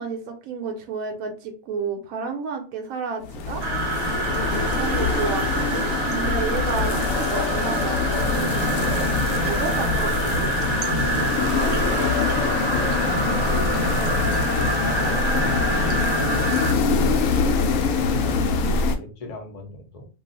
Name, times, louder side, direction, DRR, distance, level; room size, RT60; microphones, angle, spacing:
voice 1, 0.0-3.6 4.7-9.1 9.5-10.5 11.0-11.4 16.2-16.4, right 5 dB, 90° right, 3 dB, 1.0 m, -31 dB
sound 1, 3.2-19.0, left 4 dB, 80° left, 0.9 m, -24 dB
sound 2, 3.6-16.7, right 3 dB, 55° right, 0.4 m, -27 dB
sound 3, 4.5-12.2, equal, ahead, 0.8 m, -45 dB
voice 2, 4.6-5.7 9.9-10.6 11.5-12.9 13.4-20.1, left 2 dB, 35° left, 2 dB, 0.7 m, -38 dB
2.4 x 2.3 x 3.9 m, 0.36 s
omnidirectional pair, 1.4 m